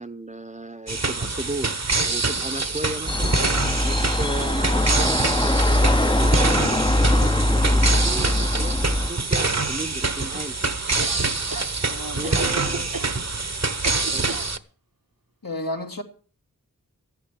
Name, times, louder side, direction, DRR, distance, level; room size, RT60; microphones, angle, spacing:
voice 1, 0.0-10.5 12.2-12.9 14.1-14.2, right 1 dB, 20° right, 9 dB, 0.8 m, -35 dB
sound 1, 0.9-14.6, right 3 dB, 50° right, 1.1 m, -25 dB
sound 2, 3.1-9.1, left 1 dB, 15° left, 0.6 m, -21 dB
sound 3, 11.0-11.7 12.2-13.1 13.8-14.5, right 3 dB, 80° right, 1.4 m, -32 dB
voice 2, 11.9-12.8 15.4-16.0, left 1 dB, 85° left, 2 dB, 2.4 m, -33 dB
14.0 x 9.9 x 7.4 m, 0.40 s
wide cardioid pair, 45°, 33 cm